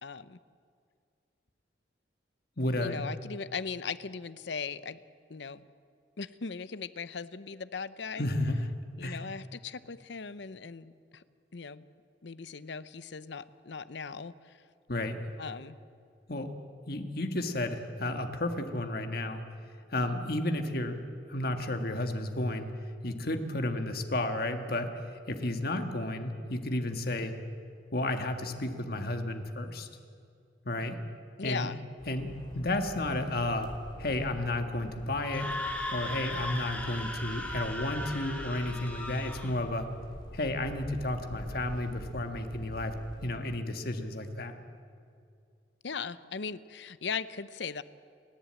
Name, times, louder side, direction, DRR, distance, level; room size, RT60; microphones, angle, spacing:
voice 1, 0.0-0.4 2.8-5.0 5.3-5.6 6.2-8.3 9.0-11.2 11.5-11.9 12.2-14.6 15.4-15.8 31.4-31.8 45.8-47.8, left 5 dB, 70° left, 15 dB, 0.7 m, -38 dB
voice 2, 2.6-3.0 8.2-8.7 9.0-9.2 14.9-15.2 16.3-16.5 16.9-19.4 19.9-21.0 21.3-22.7 23.0-27.3 27.9-29.9 30.7-31.0 31.4-31.7 32.1-33.7 34.0-35.5 35.9-39.9 40.3-43.0 43.2-44.6, left 1 dB, 55° left, 6 dB, 1.8 m, -32 dB
sound 1, 32.0-43.3, equal, 25° left, 3.1 m, -46 dB
Screaming, 35.2-39.5, left 1 dB, 5° left, 2.5 m, -37 dB
29.5 x 11.0 x 8.9 m, 2.3 s
head